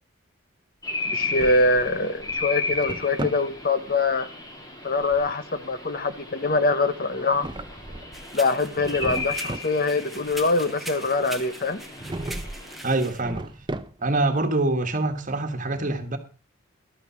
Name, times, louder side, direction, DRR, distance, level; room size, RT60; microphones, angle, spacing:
sound 1, 0.8-12.8, left 3 dB, 20° left, 2.5 m, -35 dB
Drawer open or close, 1.0-2.0 2.4-3.5 7.1-8.3 8.6-9.8 11.9-12.6 13.0-14.2, right 1 dB, 20° right, 0.6 m, -36 dB
voice 1, 1.1-4.3 4.8-7.5 8.3-11.8, left 3 dB, 40° left, 0.9 m, -24 dB
sound 2, 8.1-13.2, right 1 dB, ahead, 1.1 m, -41 dB
voice 2, 12.8-13.5 14.0-16.2, right 2 dB, 35° right, 1.6 m, -25 dB
12.5 x 8.9 x 6.1 m
head